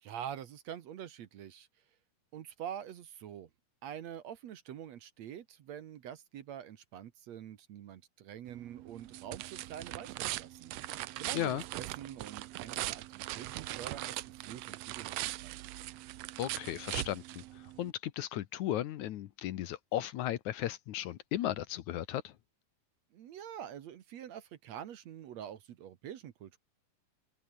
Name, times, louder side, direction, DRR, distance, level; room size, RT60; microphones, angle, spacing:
voice 1, 0.0-1.7 2.3-3.5 3.8-10.7 11.2-14.2 14.5-15.6 23.1-26.6, right 10 dB, 60° right, 2.2 m, -46 dB
sound 1, 8.5-17.9, right 16 dB, 90° right, 1.4 m, -41 dB
voice 2, 16.4-22.3, left 12 dB, 70° left, 2.3 m, -36 dB
omnidirectional pair, 3.8 m